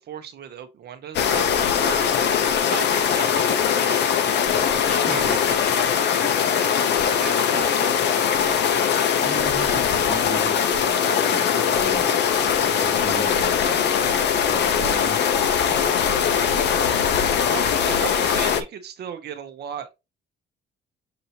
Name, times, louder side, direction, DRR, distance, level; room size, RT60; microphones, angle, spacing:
voice 1, 0.1-2.2 2.6-4.3 4.8-8.9 17.5-19.9, right 8 dB, 55° right, 0.7 m, -37 dB
sound 1, 1.1-18.6, left 7 dB, 60° left, 0.6 m, -21 dB
voice 2, 9.2-14.0 14.4-15.8 16.5-16.8, right 2 dB, 10° right, 1.4 m, -37 dB
6.7 x 2.8 x 2.8 m
cardioid pair, 140°, 20 cm